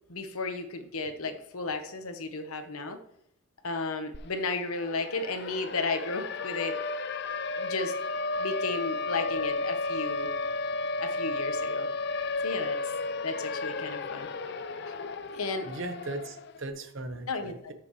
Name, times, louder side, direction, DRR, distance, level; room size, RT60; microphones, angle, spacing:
voice 1, 0.1-3.0 3.6-6.8 7.6-7.9 8.4-10.3 11.0-11.9 12.4-12.8 13.2-14.3 14.9-15.0 15.3-15.7 17.3-17.5, left 3 dB, 75° left, 8 dB, 1.0 m, -33 dB
Siren, 4.1-4.2 4.5-16.6, left 3 dB, 50° left, 0.5 m, -33 dB
voice 2, 15.6-17.7, right 2 dB, 60° right, 8 dB, 1.0 m, -38 dB
13.5 x 6.7 x 3.2 m, 0.75 s
head